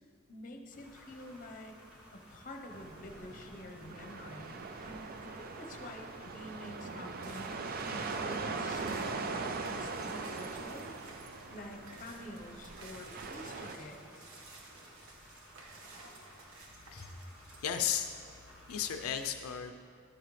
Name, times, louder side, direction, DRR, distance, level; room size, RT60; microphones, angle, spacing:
voice 1, 0.3-1.8 2.1-7.5 7.9-10.9 11.5-14.3 17.0-17.1, left 1 dB, 40° left, 3 dB, 0.8 m, -48 dB
sound 1, 0.7-19.1, equal, 5° right, 2.1 m, -57 dB
sound 2, 2.7-13.8, right 4 dB, 45° right, 0.5 m, -41 dB
sound 3, 5.4-5.7 6.1-17.7, right 2 dB, 85° right, 1.2 m, -54 dB
voice 2, 17.6-18.1 18.7-19.7, left 9 dB, 90° left, 6 dB, 0.5 m, -34 dB
11.0 x 8.9 x 3.2 m, 2.3 s
head